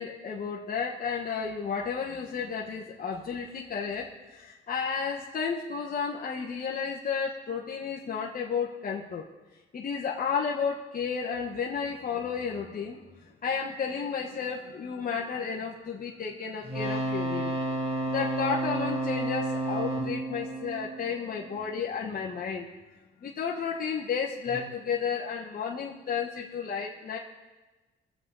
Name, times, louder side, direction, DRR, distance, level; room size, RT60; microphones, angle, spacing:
voice 1, 0.0-9.2 9.7-17.6 18.1-22.7 23.2-27.2, left 6 dB, 45° left, -2 dB, 1.3 m, -32 dB
sound 1, 16.6-21.7 24.5-24.6, right 1 dB, 30° right, 2.7 m, -31 dB
22.0 x 7.8 x 4.0 m, 1.2 s
cardioid pair, 90°, 20 cm